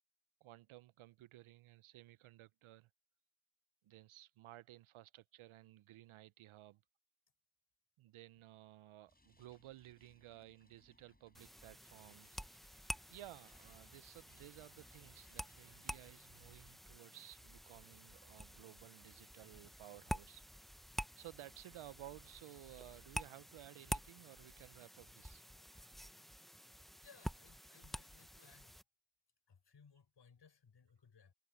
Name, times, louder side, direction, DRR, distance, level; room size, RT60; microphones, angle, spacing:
voice 1, 0.4-2.9 3.8-6.8 8.0-12.3 13.1-20.4 21.2-25.4, right 14 dB, 75° right, 0.9 m, -56 dB
sound 1, 9.1-16.8, left 2 dB, 20° left, 6.1 m, -70 dB
sound 2, 11.3-28.8, equal, ahead, 1.0 m, -49 dB
voice 2, 27.0-28.8 29.5-31.3, left 6 dB, 55° left, 5.5 m, -65 dB
supercardioid pair, 45°, 49 cm